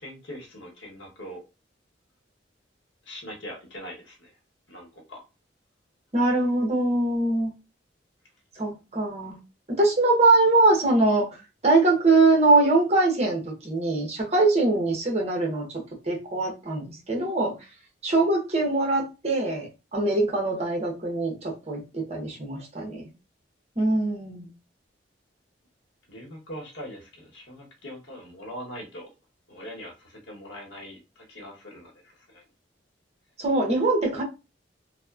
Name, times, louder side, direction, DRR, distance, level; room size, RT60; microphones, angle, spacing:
voice 1, 0.0-1.4 3.1-4.3 4.7-5.2 26.1-29.1 29.5-31.9 32.3-32.4, equal, 85° left, 1.0 m, -41 dB
voice 2, 6.1-7.5 8.6-9.3 9.8-11.3 11.6-15.7 16.1-17.5 18.0-23.1 23.8-24.5 33.4-34.2, right 2 dB, 35° right, 0.8 m, -22 dB
2.9 x 2.1 x 2.3 m
head